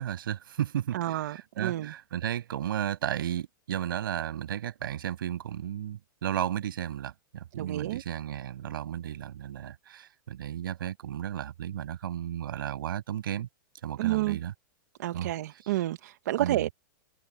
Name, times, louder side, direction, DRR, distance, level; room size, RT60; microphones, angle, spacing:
voice 1, 0.0-13.5 13.8-14.5 15.1-15.3 16.4-16.7, right 11 dB, 75° right, 7.8 m, -34 dB
voice 2, 0.9-1.9 7.5-8.0 14.0-14.4 15.0-16.7, right 15 dB, 50° right, 1.0 m, -30 dB
supercardioid pair, 175°, 11 cm